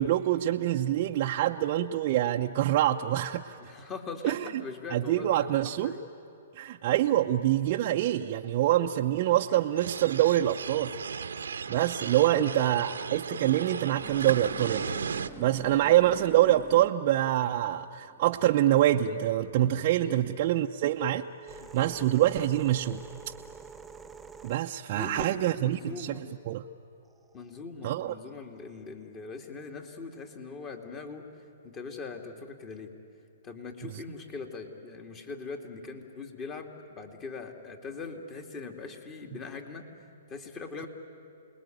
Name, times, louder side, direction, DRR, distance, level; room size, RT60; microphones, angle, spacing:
voice 1, 0.0-3.6 4.2-4.5 4.9-5.9 6.5-11.0 11.7-14.8 15.4-23.0 24.4-26.6 27.8-28.1, right 13 dB, 45° right, 1 dB, 0.7 m, -25 dB
voice 2, 3.6-5.5 5.8-6.0 12.4-12.9 20.0-20.3 21.6-22.0 24.9-26.3 27.3-31.3 31.6-32.9 33.4-39.9 40.3-40.9, left 4 dB, 25° left, 4 dB, 2.6 m, -41 dB
sound 1, 9.8-15.3, right 6 dB, 85° right, 1.0 m, -35 dB
sound 2, 13.9-19.5 20.3-26.1 27.1-27.6, right 4 dB, 5° right, 0.7 m, -49 dB
28.5 x 20.5 x 9.4 m, 2.5 s
hypercardioid pair, 140°, 0 cm